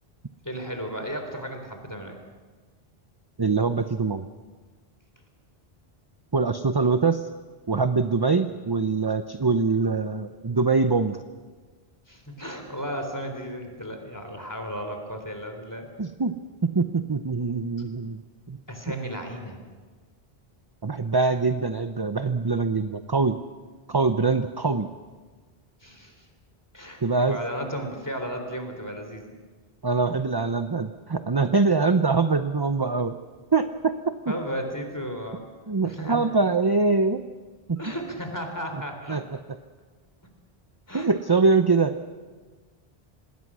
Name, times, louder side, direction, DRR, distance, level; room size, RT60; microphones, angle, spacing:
voice 1, 0.4-2.2 12.1-15.9 18.7-19.6 25.8-26.3 26.7-29.3 34.3-35.4 35.8-36.2 37.8-39.2 40.9-41.1, equal, 20° left, 4 dB, 3.6 m, -34 dB
voice 2, 3.4-4.3 6.3-7.3 7.7-11.2 16.0-18.2 18.5-18.6 20.8-23.4 23.9-24.9 27.0-27.4 29.8-33.1 33.5-34.3 35.7-37.2 37.7-37.8 39.1-39.2 40.9-41.9, right 4 dB, 25° right, 9 dB, 0.7 m, -23 dB
26.5 x 20.0 x 6.3 m, 1.4 s
omnidirectional pair, 1.0 m